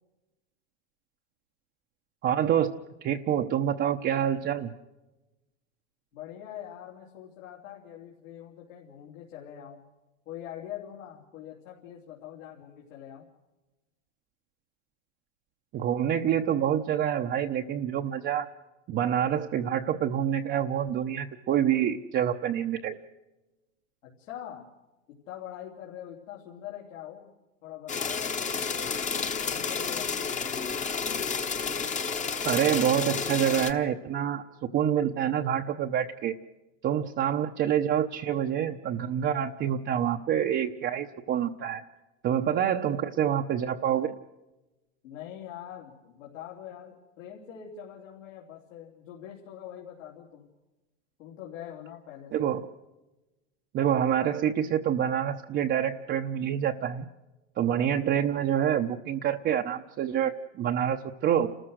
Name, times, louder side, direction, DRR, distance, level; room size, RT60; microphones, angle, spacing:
voice 1, 2.2-2.7 3.0-4.7 15.7-18.5 18.9-23.0 32.4-34.4 34.7-36.3 36.8-41.8 42.2-44.1 52.3-52.7 53.7-57.1 57.6-61.5, right 9 dB, 30° right, 2 dB, 0.9 m, -27 dB
voice 2, 6.1-9.8 10.2-13.3 24.0-24.7 25.1-27.3 27.6-30.7 45.0-50.5 51.2-52.5, left 10 dB, 75° left, -3 dB, 3.4 m, -44 dB
sound 1, 27.9-33.7, left 5 dB, 20° left, 1.2 m, -31 dB
29.5 x 14.0 x 6.4 m, 1.1 s
hypercardioid pair, 115°, 39 cm